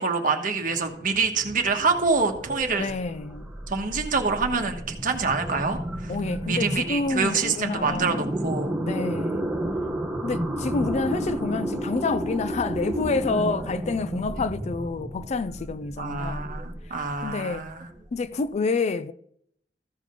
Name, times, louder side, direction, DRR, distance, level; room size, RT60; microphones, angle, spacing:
voice 1, 0.0-2.9 3.7-6.1 6.5-8.7 16.0-17.9, right 4 dB, 50° right, 1.3 m, -26 dB
sound 1, 0.6-18.4, right 1 dB, 10° right, 1.1 m, -32 dB
voice 2, 2.8-3.5 6.1-8.2 8.8-9.6 10.2-16.5 16.9-17.0 17.2-17.7 18.1-19.1, left 4 dB, 40° left, 0.4 m, -28 dB
14.5 x 5.0 x 5.1 m
head